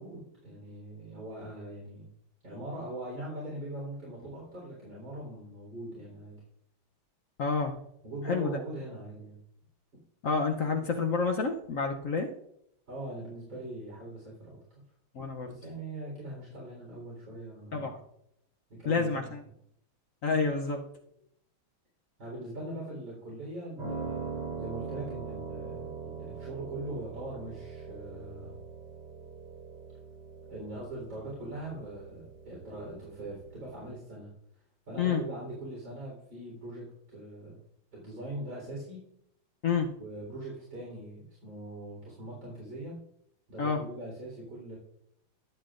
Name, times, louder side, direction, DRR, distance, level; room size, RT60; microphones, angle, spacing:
voice 1, 0.0-2.1 2.4-6.4 8.0-9.4 12.9-14.6 15.4-18.0 18.7-19.3 22.2-28.6 30.5-34.3 34.9-37.5 37.9-39.0 40.0-42.9 43.5-44.8, right 1 dB, 60° right, -6 dB, 4.7 m, -41 dB
voice 2, 7.4-7.8 8.2-8.6 10.2-12.3 15.1-15.6 17.7-18.0 18.9-19.4 20.2-20.9 35.0-35.2 39.6-39.9 43.6-43.8, left 5 dB, 60° left, 3 dB, 0.9 m, -29 dB
Piano, 23.8-33.9, right 5 dB, 75° right, 4.0 m, -42 dB
22.0 x 7.9 x 2.5 m, 0.75 s
omnidirectional pair, 2.2 m